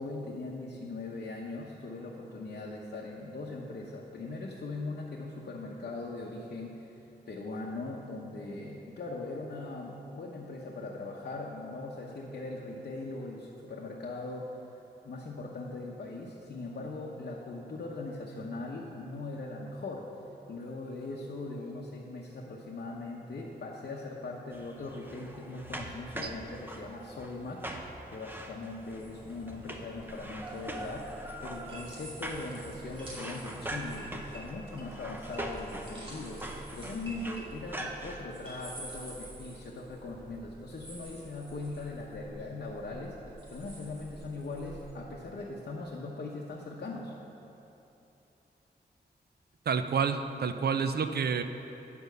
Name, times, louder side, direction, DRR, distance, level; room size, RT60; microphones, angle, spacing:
voice 1, 0.0-7.0 7.3-14.6 15.0-20.1 20.5-27.6 28.1-43.1 43.5-47.1, left 2 dB, 65° left, -3 dB, 0.9 m, -40 dB
sound 1, 24.5-38.2, right 1 dB, 10° right, 0.8 m, -42 dB
sound 2, 28.8-45.0, right 1 dB, 30° right, 2.6 m, -48 dB
voice 2, 49.7-51.4, right 6 dB, 65° right, 9 dB, 0.5 m, -29 dB
9.3 x 7.0 x 6.6 m, 3.0 s
wide cardioid pair, 140°, 17 cm